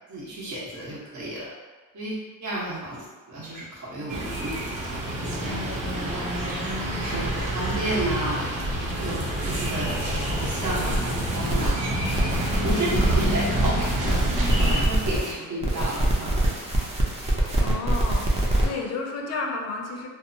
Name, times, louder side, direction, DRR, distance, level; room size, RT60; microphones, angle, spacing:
voice 1, 0.1-1.5 1.9-2.1 2.4-4.5 4.9-6.2 6.7-8.4 8.7-11.0 11.3-11.7 12.2-12.3 12.6-14.2 14.6-16.3, right 1 dB, 55° right, -7 dB, 1.0 m, -32 dB
sound 1, 4.1-14.8, right 1 dB, 80° right, 0.7 m, -28 dB
sound 2, 11.3-11.7 12.0-15.3 15.6-18.6, right 1 dB, 20° right, 0.5 m, -24 dB
voice 2, 17.6-20.1, left 3 dB, 50° left, 1 dB, 0.5 m, -32 dB
2.7 x 2.0 x 2.6 m, 1.3 s
cardioid pair, 120°, 35 cm